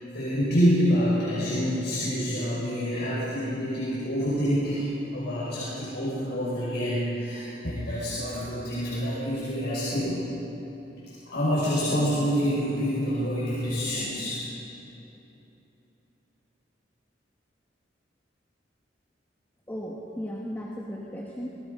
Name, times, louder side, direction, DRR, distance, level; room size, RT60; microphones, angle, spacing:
voice 1, 0.0-10.2 11.3-14.4, equal, 65° left, -8 dB, 5.8 m, -27 dB
voice 2, 19.7-21.5, equal, 10° left, -3 dB, 1.8 m, -35 dB
28.0 x 18.5 x 5.4 m, 3.0 s
head